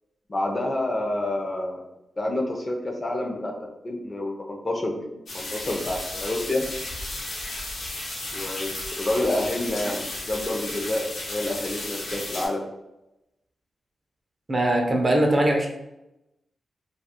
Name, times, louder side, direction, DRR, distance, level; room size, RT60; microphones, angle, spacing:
voice 1, 0.3-1.8 2.2-5.1 5.3-6.6 8.3-12.6, left 1 dB, 35° left, 0 dB, 0.5 m, -28 dB
sound 1, 5.3-12.5, left 2 dB, 85° left, 0.7 m, -34 dB
voice 2, 14.5-15.7, right 1 dB, 30° right, 1 dB, 0.4 m, -21 dB
2.3 x 2.3 x 2.9 m, 0.92 s
cardioid pair, 90°, 0 cm